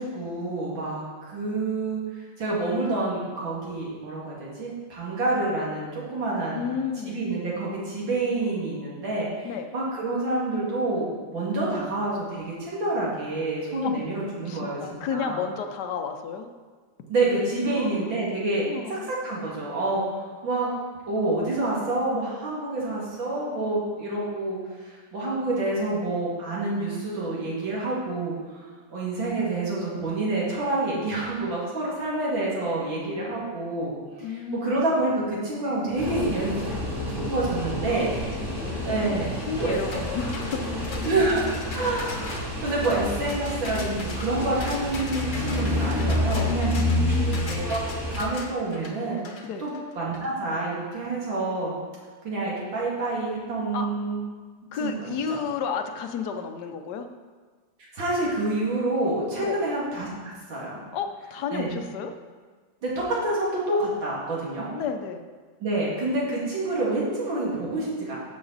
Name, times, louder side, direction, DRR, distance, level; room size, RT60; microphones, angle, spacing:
voice 1, 0.0-6.6 7.0-15.4 17.1-20.7 21.1-28.6 28.9-33.9 34.5-36.6 37.1-38.4 38.8-39.3 39.6-39.8 41.0-41.4 41.7-46.7 47.5-47.8 48.1-49.2 49.6-51.8 52.2-54.2 54.8-55.4 57.8-60.8 61.5-61.7 62.8-64.7 65.6-68.2, right 2 dB, 80° right, -6 dB, 3.1 m, -28 dB
voice 2, 6.5-7.2 9.4-9.7 13.8-13.9 14.5-16.5 17.7-18.2 18.6-19.1 34.2-34.8 37.9-38.1 38.4-40.6 40.9-41.2 46.8-47.5 49.4-49.6 53.7-53.9 54.7-57.1 59.4-59.6 60.9-62.1 64.7-65.2, left 6 dB, 65° left, 6 dB, 1.2 m, -32 dB
sound 1, 36.0-48.2, left 1 dB, 25° right, 2.6 m, -29 dB
sound 2, 39.9-50.3, left 3 dB, 45° left, 1.3 m, -41 dB
11.5 x 6.9 x 4.1 m, 1.5 s
omnidirectional pair, 2.1 m